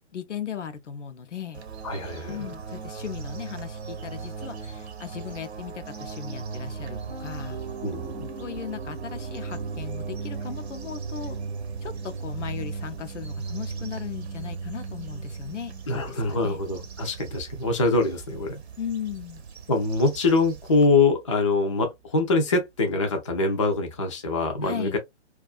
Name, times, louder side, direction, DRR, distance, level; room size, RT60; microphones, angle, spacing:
voice 1, 0.1-1.6 2.3-7.6 8.4-11.4 11.8-16.6 18.8-19.4 24.6-25.0, left 8 dB, 80° left, 0.6 m, -37 dB
sound 1, 1.5-20.9, right 5 dB, 60° right, 0.7 m, -37 dB
voice 2, 1.8-2.5 7.8-8.3 15.9-18.6 19.7-25.0, left 3 dB, 30° left, 0.4 m, -24 dB
Piano, 6.7-18.6, right 5 dB, 30° right, 0.6 m, -45 dB
2.3 x 2.3 x 2.3 m
figure-of-eight pair, 130°, 36 cm